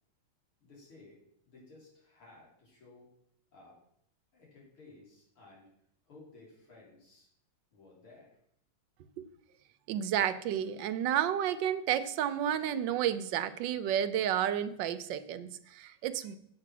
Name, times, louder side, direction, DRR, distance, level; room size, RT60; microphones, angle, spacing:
voice 1, 0.6-1.2 1.5-3.1 3.5-3.8 4.3-5.7 6.1-7.3 7.7-8.3, left 2 dB, 85° left, -4 dB, 4.4 m, -56 dB
voice 2, 9.9-16.4, right 10 dB, 70° right, 12 dB, 1.2 m, -31 dB
8.3 x 7.6 x 6.1 m, 0.70 s
omnidirectional pair, 2.3 m